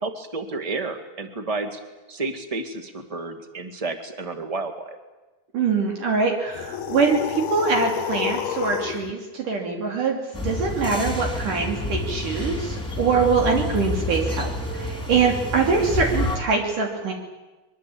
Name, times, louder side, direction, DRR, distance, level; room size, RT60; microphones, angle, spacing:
voice 1, 0.0-1.8 2.1-5.0, right 3 dB, 15° right, 7 dB, 1.1 m, -31 dB
voice 2, 5.5-17.1, right 5 dB, 60° right, 1 dB, 4.3 m, -23 dB
sound 1, 6.5-9.1, left 10 dB, 60° left, 2.0 m, -29 dB
sound 2, 10.3-16.4, left 2 dB, ahead, 3.1 m, -29 dB
24.0 x 23.0 x 8.7 m, 1.2 s
omnidirectional pair, 4.3 m